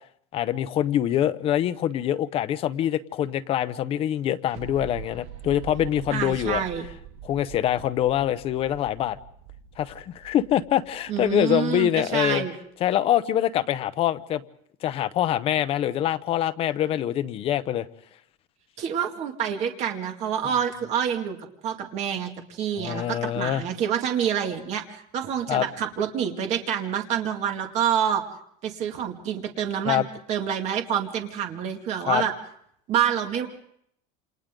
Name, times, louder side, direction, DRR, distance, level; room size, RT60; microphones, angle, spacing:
voice 1, 0.3-6.6 7.2-9.2 9.8-12.4 12.8-14.4 14.8-17.9 22.8-23.6 25.5-25.7 29.9-30.0 32.0-32.2, left 11 dB, 30° left, 11 dB, 0.8 m, -24 dB
sound 1, 4.5-12.1, right 9 dB, 60° right, 2.4 m, -43 dB
voice 2, 6.1-6.8 11.1-12.5 18.8-21.4 21.6-28.2 28.6-32.3 32.9-33.5, right 8 dB, 40° right, 4 dB, 2.3 m, -27 dB
28.5 x 27.5 x 3.8 m, 0.70 s
cardioid pair, 175°, 18 cm